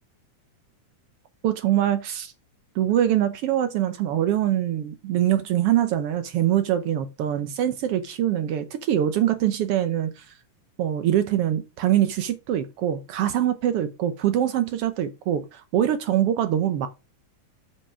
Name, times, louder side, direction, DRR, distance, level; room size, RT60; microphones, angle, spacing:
voice 1, 1.4-2.3 2.7-10.3 10.8-16.9, right 11 dB, 85° right, 1.3 m, -23 dB
8.7 x 5.5 x 4.9 m
omnidirectional pair, 3.7 m